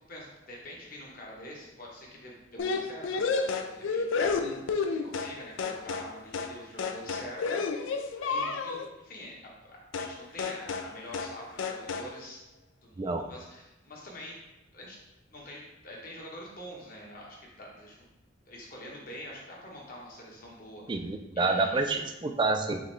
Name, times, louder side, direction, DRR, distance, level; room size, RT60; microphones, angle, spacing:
voice 1, 0.1-4.5 4.9-12.4 12.8-14.4 14.7-15.0 15.3-18.1 18.5-21.0 21.3-22.0, equal, 45° left, -3 dB, 1.1 m, -46 dB
sound 1, 2.6-5.3 5.6-6.1 6.3-6.5 6.8-8.9 9.9-10.1 10.4-10.9 11.1-11.3 11.6-12.1, left 4 dB, 80° left, 0.4 m, -30 dB
voice 2, 20.9-22.8, right 3 dB, 25° right, 6 dB, 0.3 m, -28 dB
4.9 x 3.1 x 3.1 m, 0.96 s
head